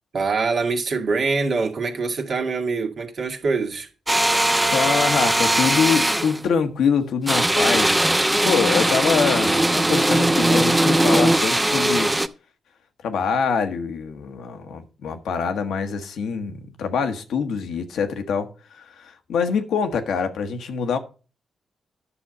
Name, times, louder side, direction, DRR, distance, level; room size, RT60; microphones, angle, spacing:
voice 1, 0.1-3.9, right 4 dB, 60° right, 1.8 m, -24 dB
sound 1, 4.1-6.4 7.3-12.3, right 1 dB, 15° right, 0.8 m, -19 dB
voice 2, 4.7-8.1 8.3-12.1 13.0-21.0, left 6 dB, 70° left, 1.1 m, -24 dB
10.0 x 6.3 x 5.0 m
hypercardioid pair, 40°, 0 cm